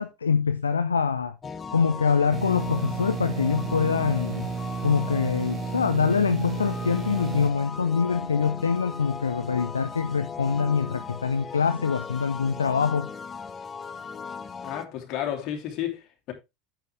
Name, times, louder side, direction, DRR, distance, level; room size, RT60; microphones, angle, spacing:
voice 1, 0.0-1.3 1.7-4.5 4.8-13.1, left 6 dB, 85° left, 0.5 m, -24 dB
sound 1, 1.4-14.9, left 5 dB, 25° left, 0.9 m, -38 dB
sound 2, 2.3-7.5, right 6 dB, 30° right, 1.5 m, -33 dB
voice 2, 14.6-16.3, left 11 dB, 50° left, 2.8 m, -32 dB
9.5 x 7.8 x 3.4 m
figure-of-eight pair, 75°, 0 cm